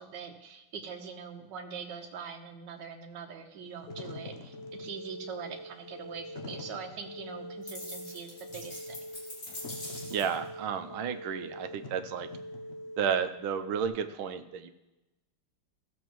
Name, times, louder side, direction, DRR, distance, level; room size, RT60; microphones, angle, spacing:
voice 1, 0.0-8.9, right 6 dB, 65° right, 3 dB, 1.6 m, -43 dB
Wind / Fire, 3.7-13.2, left 3 dB, 55° left, 0.7 m, -49 dB
sound 1, 3.9-13.9, equal, 80° left, 1.5 m, -44 dB
sound 2, 7.7-10.5, left 1 dB, 35° left, 2.6 m, -44 dB
voice 2, 10.1-12.3 13.0-14.7, right 7 dB, 80° right, 9 dB, 1.5 m, -32 dB
15.5 x 7.2 x 3.1 m, 1.0 s
omnidirectional pair, 2.3 m